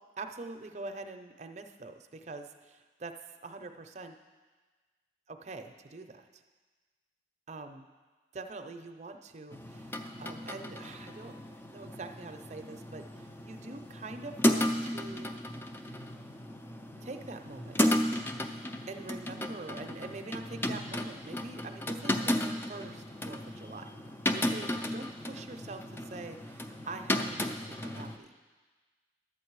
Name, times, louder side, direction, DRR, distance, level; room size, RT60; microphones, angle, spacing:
voice 1, 0.2-3.1 3.4-4.2 5.3-6.4 7.5-7.9 8.3-11.3 11.7-15.4 15.8-16.1 17.0-18.0 18.9-22.3 22.7-23.9 24.3-28.3, right 3 dB, 40° right, 6 dB, 0.6 m, -44 dB
sound 1, 9.5-28.2, left 1 dB, 10° left, 0.4 m, -34 dB
11.5 x 8.0 x 4.6 m, 1.4 s
head